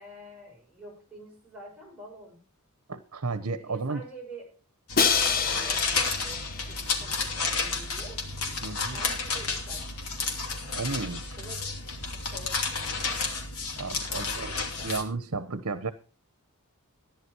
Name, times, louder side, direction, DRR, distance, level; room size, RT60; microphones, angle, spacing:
voice 1, 0.0-2.5 3.6-4.5 5.4-8.3 8.9-10.0 11.4-11.9 12.3-13.6 14.1-14.9, right 1 dB, 5° right, -3 dB, 6.0 m, -47 dB
voice 2, 2.9-4.0 8.6-9.0 10.8-11.3 13.8-14.5 14.8-15.9, right 3 dB, 70° right, 12 dB, 1.0 m, -33 dB
sound 1, 4.9-15.0, left 4 dB, 75° left, 2.8 m, -31 dB
Crash cymbal, 5.0-7.0, left 5 dB, 40° left, 1.2 m, -27 dB
14.0 x 10.5 x 4.7 m, 0.35 s
head